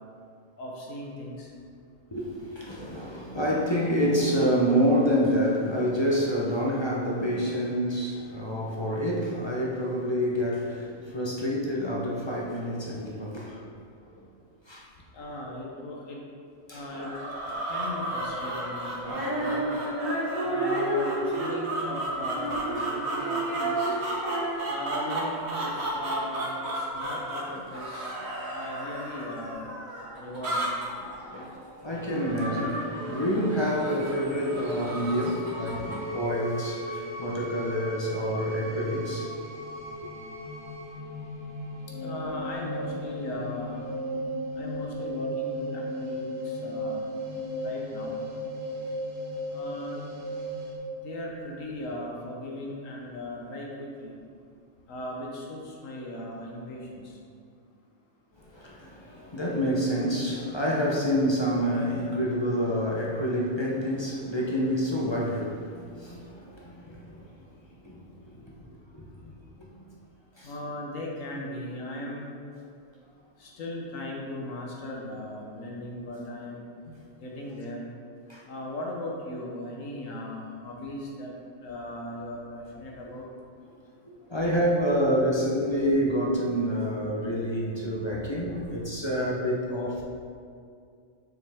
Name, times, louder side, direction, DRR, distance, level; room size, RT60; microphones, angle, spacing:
voice 1, 0.6-1.5 15.1-16.2 16.7-17.1 17.7-19.7 20.4-24.0 24.7-28.1 28.5-29.7 30.2-30.7 42.0-43.8 44.6-47.0 47.6-48.2 49.5-50.0 50.9-54.1 54.9-57.2 70.4-72.3 73.4-76.6 77.2-77.9 78.5-81.3 81.6-83.2, left 1 dB, 85° left, -2 dB, 1.3 m, -38 dB
voice 2, 2.1-13.6 14.1-14.2 14.7-14.8 16.7-17.0 25.8-25.9 27.4-27.6 27.9-28.1 31.0-31.5 31.8-39.3 58.4-67.2 67.8-68.5 68.9-69.0 69.6-69.7 70.4-70.5 78.3-78.4 84.0-90.0, equal, 25° left, -4 dB, 0.8 m, -28 dB
sound 1, 16.9-36.1, right 1 dB, 55° right, 1.4 m, -34 dB
Female singing, 19.0-25.4, right 1 dB, 90° right, 1.9 m, -31 dB
sound 2, 31.9-50.8, equal, 25° right, 0.9 m, -36 dB
6.9 x 6.3 x 3.5 m, 2.3 s
omnidirectional pair, 1.3 m